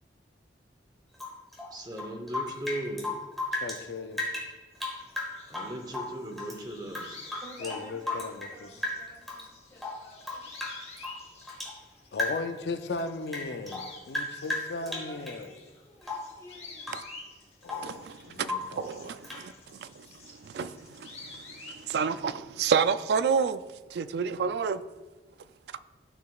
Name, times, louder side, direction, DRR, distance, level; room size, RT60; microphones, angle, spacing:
Rain / Drip, 1.1-3.8 4.1-6.6 6.9-8.6 8.8-9.5 9.8-11.8 12.1-12.6 12.9-15.4 16.0-16.4 16.8-17.1 17.4-18.0 18.4-18.8 19.2-19.5, left 2 dB, ahead, 1.3 m, -35 dB
voice 1, 1.7-3.1 5.5-7.3, right 1 dB, 25° right, 0.8 m, -37 dB
voice 2, 3.5-4.2 7.6-8.7 12.1-15.5 17.6-19.2, left 3 dB, 65° left, 0.4 m, -37 dB
sound 1, 4.7-12.4 12.7-21.9, left 3 dB, 35° left, 0.9 m, -50 dB
voice 3, 7.4-10.7 13.5-13.8 14.7-17.1, equal, 20° left, 1.7 m, -51 dB
voice 4, 17.8-19.5 19.8-20.1 20.4-23.6 23.9-24.8, right 6 dB, 65° right, 0.3 m, -29 dB
12.0 x 4.9 x 2.3 m
head